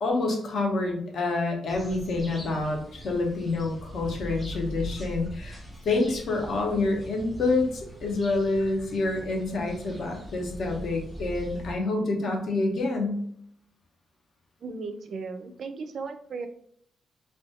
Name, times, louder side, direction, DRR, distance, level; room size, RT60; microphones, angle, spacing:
voice 1, 0.0-5.6 5.8-13.2, left 3 dB, 55° left, 2 dB, 0.6 m, -27 dB
sound 1, 1.7-11.7, equal, 15° left, 0.6 m, -41 dB
voice 2, 14.6-16.5, right 4 dB, 50° right, 7 dB, 0.3 m, -36 dB
2.4 x 2.1 x 2.7 m, 0.66 s
cardioid pair, 150°, 0 cm